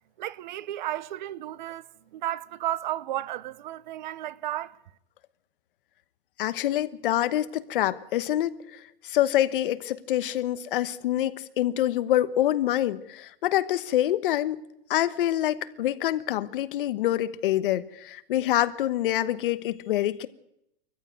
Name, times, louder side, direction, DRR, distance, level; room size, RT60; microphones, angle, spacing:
voice 1, 0.2-4.8, right 13 dB, 45° right, 0.7 m, -33 dB
voice 2, 6.4-8.8 9.0-14.6 14.9-20.3, left 13 dB, 55° left, 1.1 m, -26 dB
22.5 x 14.5 x 9.1 m
supercardioid pair, 170°, 33 cm